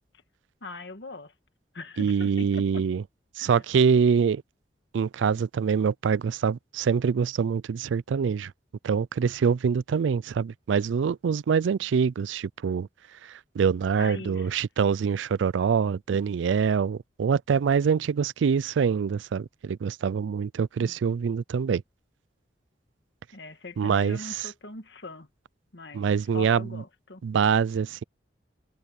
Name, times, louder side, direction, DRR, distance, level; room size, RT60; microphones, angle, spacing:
voice 1, 0.6-1.3 1.7-2.9 3.4-3.6 14.0-14.6 20.8-20.9 23.3-25.3 25.7-27.2, left 2 dB, 65° left, 1.9 m, -41 dB
voice 2, 2.0-3.0 3.4-4.4 4.9-8.5 8.8-12.9 13.2-21.8 23.8-24.5 25.9-26.8 27.2-28.0, right 6 dB, 80° right, 0.4 m, -25 dB
head